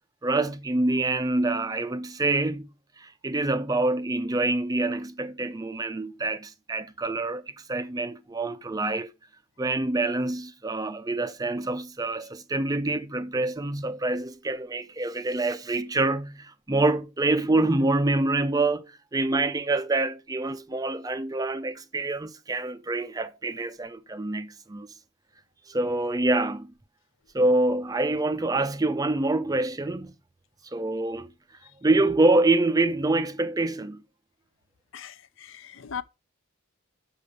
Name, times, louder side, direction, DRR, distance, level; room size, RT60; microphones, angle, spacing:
voice 1, 0.2-2.7 3.0-9.1 9.6-24.9 25.7-26.7 27.3-30.1 30.6-31.3 31.8-34.0, right 2 dB, 15° right, 0.4 m, -26 dB
voice 2, 34.9-36.0, left 7 dB, 60° left, 0.6 m, -39 dB
6.7 x 6.0 x 5.3 m
head